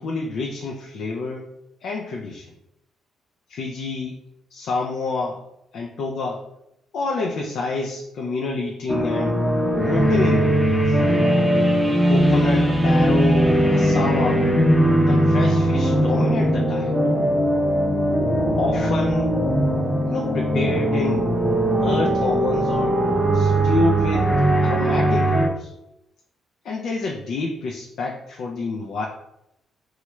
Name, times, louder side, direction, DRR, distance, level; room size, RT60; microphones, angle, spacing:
voice 1, 0.0-1.4 1.8-2.5 3.5-4.2 4.5-5.4 5.7-6.4 6.9-9.4 9.8-11.0 12.1-14.5 15.1-16.9 18.6-19.4 20.1-21.3 21.8-23.0 23.3-24.3 24.6-25.7 26.6-29.1, left 3 dB, 70° left, 0 dB, 0.4 m, -28 dB
sound 1, 8.9-25.5, right 1 dB, 5° left, 0.6 m, -19 dB
3.1 x 2.3 x 3.0 m, 0.83 s
supercardioid pair, 70°, 0 cm